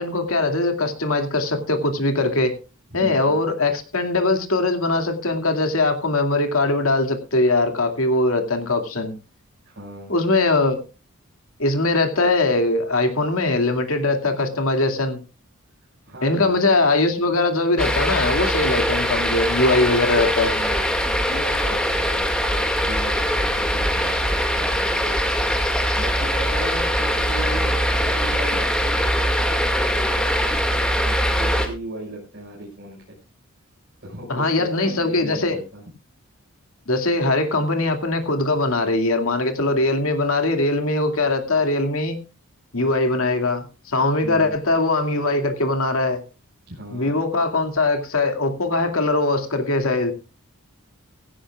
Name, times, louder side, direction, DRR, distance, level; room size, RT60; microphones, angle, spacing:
voice 1, 0.0-2.5 2.9-9.1 10.1-10.8 11.6-15.2 16.2-20.5 34.3-35.6 36.9-42.2 42.7-46.2 46.9-50.1, left 2 dB, 70° left, 6 dB, 2.4 m, -21 dB
voice 2, 2.9-3.4 9.6-10.1 16.0-16.6 20.4-25.2 25.5-33.2 34.0-35.8 44.2-44.5 46.7-47.1, right 1 dB, 50° right, -4 dB, 5.9 m, -37 dB
sound 1, 17.8-31.7, equal, 5° left, 2.0 m, -22 dB
16.5 x 16.0 x 2.4 m, 0.31 s
head